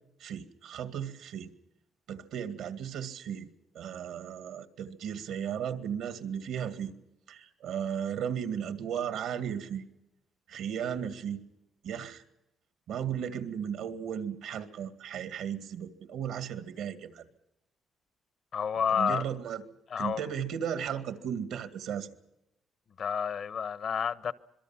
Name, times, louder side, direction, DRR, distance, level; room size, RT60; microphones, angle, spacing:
voice 1, 0.2-1.5 2.1-3.5 3.7-6.9 7.3-9.8 10.5-11.4 11.8-12.2 12.9-17.2 18.9-19.6 20.0-22.1, right 8 dB, 85° right, 2.1 m, -35 dB
voice 2, 18.5-19.2 19.9-20.2 23.0-24.3, left 7 dB, 60° left, 1.1 m, -30 dB
26.0 x 22.5 x 6.0 m
cardioid pair, 90°, 0 cm